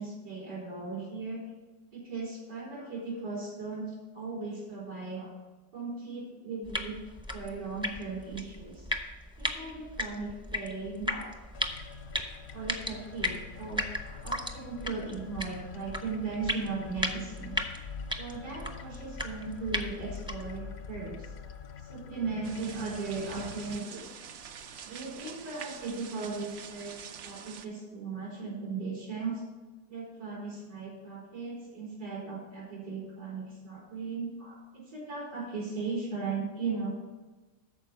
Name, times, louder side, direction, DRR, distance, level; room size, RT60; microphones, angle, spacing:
voice 1, 0.0-1.5 1.9-3.9 4.1-5.3 5.7-6.9 7.3-8.9 9.4-11.3 12.5-17.6 18.2-21.3 21.8-24.2 24.8-26.9 27.2-29.4 29.9-36.9, right 4 dB, 85° right, -5 dB, 4.7 m, -37 dB
sound 1, 6.6-20.6, left 1 dB, 5° right, 0.4 m, -37 dB
sound 2, 11.5-23.8, left 7 dB, 65° left, 0.6 m, -45 dB
sound 3, 22.4-27.7, right 7 dB, 60° right, 0.6 m, -46 dB
13.5 x 4.7 x 6.7 m, 1.2 s
omnidirectional pair, 1.7 m